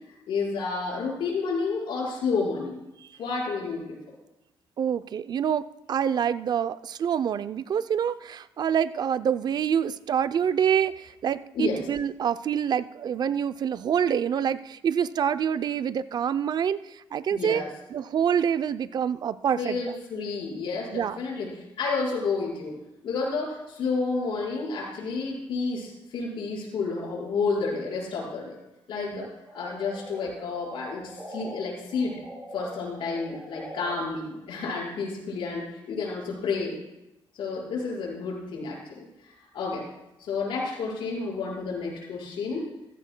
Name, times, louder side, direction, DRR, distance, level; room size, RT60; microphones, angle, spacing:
voice 1, 0.3-2.8 3.2-4.0 11.5-11.8 17.3-17.7 19.6-22.7 23.0-28.6 28.9-29.3 29.5-32.2 32.5-36.8 37.4-39.8 40.2-42.7, left 4 dB, 75° left, -5 dB, 5.0 m, -30 dB
voice 2, 4.8-17.6 17.9-19.8 20.9-21.2 29.1-29.3, right 8 dB, 50° right, 14 dB, 0.5 m, -26 dB
sound 1, 29.5-31.5 31.9-34.0, right 1 dB, 20° right, 5.3 m, -42 dB
15.0 x 15.0 x 2.2 m, 0.92 s
cardioid pair, 100°, 9 cm